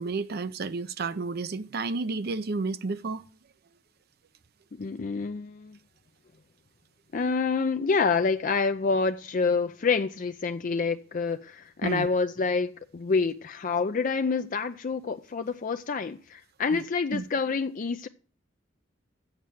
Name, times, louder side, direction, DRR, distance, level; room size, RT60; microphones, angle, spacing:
voice 1, 0.0-3.3 11.8-12.1 16.7-16.8 17.1-17.2, right 3 dB, 55° right, 0.5 m, -31 dB
voice 2, 4.8-5.8 7.1-18.1, left 4 dB, 45° left, 0.5 m, -27 dB
7.5 x 7.4 x 8.2 m
head